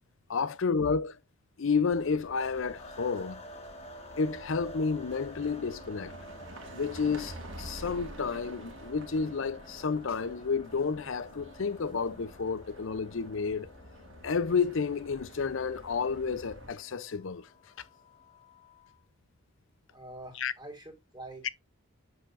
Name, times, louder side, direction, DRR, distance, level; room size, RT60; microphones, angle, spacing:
voice 1, 0.3-1.2 1.6-3.4 4.2-6.1 6.7-13.7 14.2-17.5 20.4-20.5, left 5 dB, 60° left, 0.5 m, -31 dB
sound 1, 1.9-16.7, right 1 dB, 55° right, 1.7 m, -49 dB
sound 2, 2.4-19.0, left 1 dB, 30° left, 1.5 m, -50 dB
voice 2, 19.9-21.5, right 2 dB, 20° right, 2.1 m, -46 dB
7.7 x 6.6 x 2.5 m
head